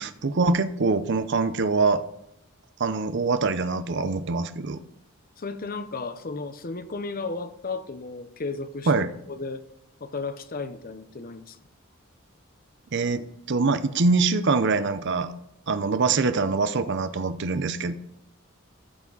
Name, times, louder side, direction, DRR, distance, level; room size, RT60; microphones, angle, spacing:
voice 1, 0.0-2.0 2.8-4.8 8.9-9.1 12.9-15.4 15.7-17.9, right 3 dB, 60° right, 11 dB, 0.6 m, -24 dB
voice 2, 5.4-8.9 9.3-9.6 10.0-11.6, left 3 dB, 45° left, 11 dB, 0.8 m, -34 dB
13.5 x 6.0 x 4.0 m, 0.78 s
head